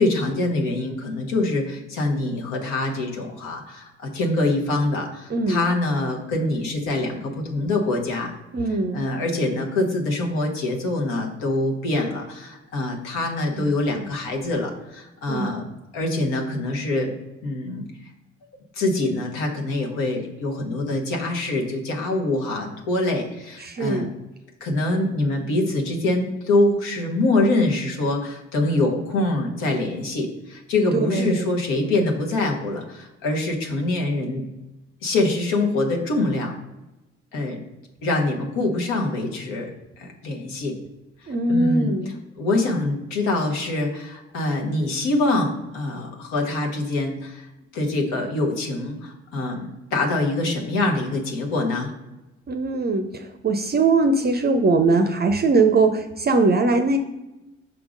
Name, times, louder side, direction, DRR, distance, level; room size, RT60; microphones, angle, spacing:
voice 1, 0.0-8.3 8.6-17.1 17.4-17.8 18.7-24.1 24.6-34.5 35.0-36.5 37.3-37.6 38.0-39.7 40.0-40.7 41.2-47.5 47.7-51.9, left 2 dB, 65° left, 1 dB, 1.5 m, -24 dB
voice 2, 8.5-9.0 13.6-13.7 15.3-15.5 23.6-24.1 30.9-31.5 41.3-42.1 52.5-53.0 53.4-57.0, right 3 dB, 30° right, 7 dB, 0.6 m, -21 dB
5.7 x 3.6 x 5.1 m, 0.99 s
figure-of-eight pair, 50°, 35 cm